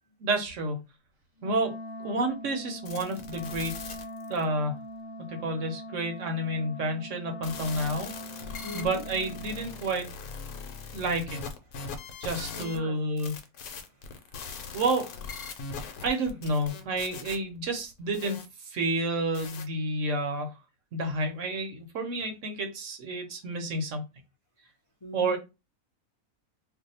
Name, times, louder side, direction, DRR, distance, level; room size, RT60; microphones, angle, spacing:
voice 1, 0.2-0.8 1.4-3.7 4.3-4.8 5.3-8.4 8.7-10.1 10.9-11.4 12.2-13.4 14.7-15.1 16.0-20.5 20.9-24.0 25.1-25.4, right 2 dB, 65° right, 0.9 m, -30 dB
Wind instrument woodwind instrument, 1.4-9.8, equal, 35° right, 0.4 m, -42 dB
sound 1, 2.8-4.4 7.4-12.8 13.2-18.4 19.3-19.6, left 5 dB, 85° left, 1.1 m, -40 dB
voice 2, 8.5-9.0 10.5-11.0 11.7-12.3 12.5-13.0 13.7-14.8 25.0-25.4, left 1 dB, 40° left, 0.4 m, -45 dB
2.6 x 2.2 x 4.0 m
omnidirectional pair, 1.6 m